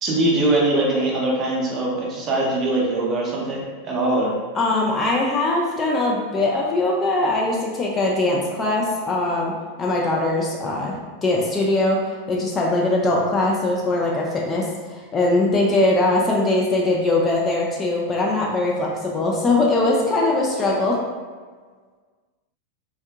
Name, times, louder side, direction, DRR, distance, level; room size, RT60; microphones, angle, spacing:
voice 1, 0.0-4.3, right 2 dB, 30° right, -3 dB, 0.7 m, -22 dB
voice 2, 4.5-9.5 9.8-12.0 12.3-21.0, left 2 dB, 20° left, -2 dB, 0.4 m, -21 dB
3.4 x 2.6 x 2.3 m, 1.5 s
figure-of-eight pair, 90°, 0 cm